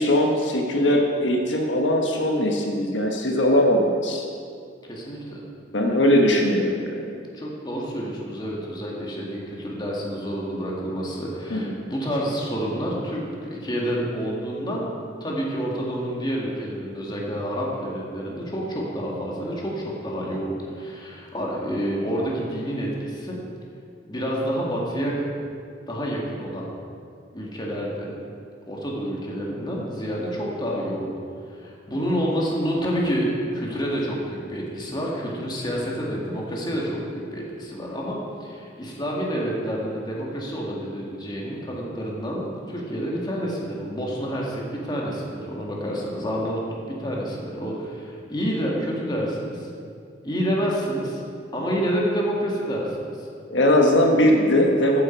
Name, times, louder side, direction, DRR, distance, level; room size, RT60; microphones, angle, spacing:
voice 1, 0.0-4.3 5.7-7.0 11.5-11.8 53.5-55.0, left 1 dB, 85° left, 1 dB, 1.3 m, -20 dB
voice 2, 4.9-5.4 7.3-14.9 15.2-23.4 24.1-25.2 25.9-26.7 27.3-28.1 28.7-31.1 31.5-46.6 46.9-49.7 50.2-51.2 51.5-53.3, equal, 25° left, -3 dB, 2.1 m, -28 dB
14.0 x 9.6 x 4.6 m, 2.3 s
head